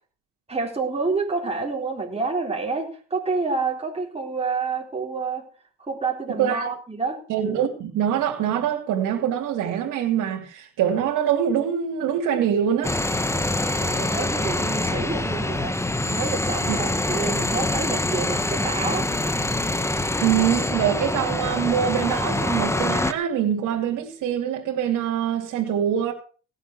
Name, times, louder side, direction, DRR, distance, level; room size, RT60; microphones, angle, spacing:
voice 1, 0.5-5.5 5.8-7.2 13.8-15.8 16.1-19.1, right 4 dB, 20° right, 4.0 m, -28 dB
voice 2, 6.3-6.7 7.3-12.9 16.7-16.8 20.2-26.1, right 9 dB, 90° right, 2.7 m, -24 dB
sound 1, 12.8-23.1, left 2 dB, 10° left, 1.1 m, -25 dB
17.0 x 7.9 x 6.1 m
cardioid pair, 90°, 30 cm